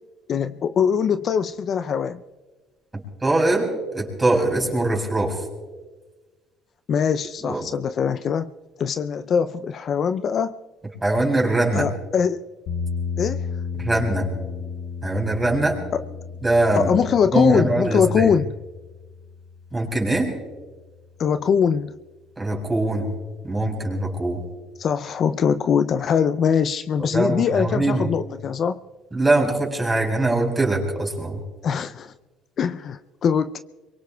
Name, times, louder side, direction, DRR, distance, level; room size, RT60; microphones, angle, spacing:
voice 1, 0.3-2.2 6.9-8.5 8.8-10.5 11.7-12.4 13.2-13.5 15.9-16.0 16.8-18.5 21.2-21.9 24.8-28.8 31.6-32.1 32.6-33.6, left 7 dB, 50° left, 11 dB, 0.5 m, -22 dB
voice 2, 3.2-5.4 7.4-7.7 11.0-11.9 13.8-14.3 15.0-15.8 16.4-16.9 17.3-18.3 19.7-20.3 22.4-23.1 23.4-24.4 27.0-28.1 29.1-31.4, right 2 dB, 15° right, 1 dB, 4.8 m, -22 dB
sound 1, 12.7-20.7, left 5 dB, 75° left, 1.4 m, -34 dB
25.5 x 23.0 x 2.3 m, 1.3 s
cardioid pair, 100°, 0 cm